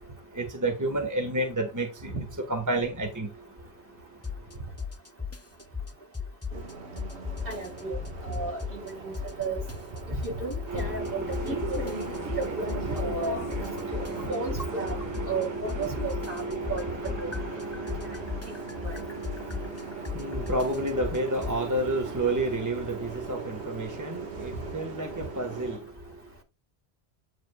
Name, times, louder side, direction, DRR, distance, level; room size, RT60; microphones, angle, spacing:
voice 1, 0.4-1.9 2.5-3.3 10.7-25.8, right 1 dB, 15° right, 1.5 m, -32 dB
sound 1, 4.2-4.5 4.8-6.7 7.0-8.9 9.1-11.1 11.3-15.4 15.7-21.6, left 5 dB, 20° left, 0.5 m, -35 dB
Bus, 6.5-25.8, right 4 dB, 80° right, 1.8 m, -40 dB
voice 2, 7.5-9.1 9.4-9.6 10.2-11.9 12.4-13.5 14.3-15.0 15.3-16.8 17.2-17.3 18.8-19.0, right 3 dB, 60° right, 3.0 m, -33 dB
9.0 x 7.4 x 2.3 m
omnidirectional pair, 1.1 m